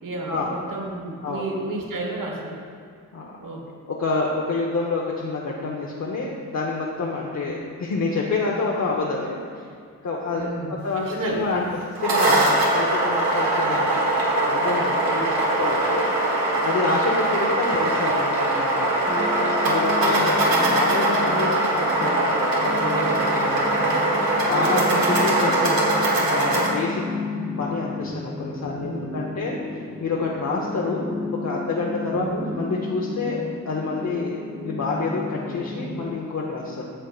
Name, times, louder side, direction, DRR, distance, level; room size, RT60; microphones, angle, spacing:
voice 1, 0.0-2.7 3.4-3.6 7.4-7.6 10.3-11.4 12.2-12.5 13.6-14.0 15.0-15.6 28.6-29.1 32.1-32.5, right 2 dB, 65° right, 0 dB, 1.3 m, -32 dB
voice 2, 3.9-9.6 10.0-11.7 12.0-15.0 15.6-16.1 16.6-19.1 19.6-23.8 24.4-26.0 26.3-27.0 27.6-31.1 31.4-32.2 32.5-36.8, left 3 dB, 50° left, -3 dB, 0.9 m, -28 dB
sound 1, 11.8-26.7, right 1 dB, 85° right, 1.3 m, -21 dB
sound 2, 19.1-36.1, left 2 dB, 5° right, 0.7 m, -33 dB
8.9 x 6.4 x 2.4 m, 2.3 s
cardioid pair, 65°, 35 cm